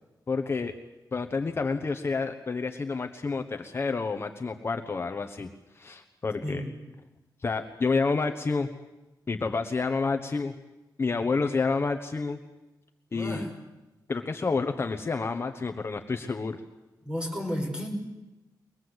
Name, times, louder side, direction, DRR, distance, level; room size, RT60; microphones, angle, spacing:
voice 1, 0.3-0.7 1.1-5.5 5.7-6.6 7.4-8.7 9.3-10.5 11.0-12.4 13.1-13.5 14.1-16.6, left 4 dB, 35° left, 6 dB, 1.1 m, -29 dB
voice 2, 13.1-13.5 17.0-17.9, equal, 15° right, 0 dB, 5.8 m, -32 dB
23.0 x 20.5 x 8.0 m, 1.0 s
wide cardioid pair, 150°, 7 cm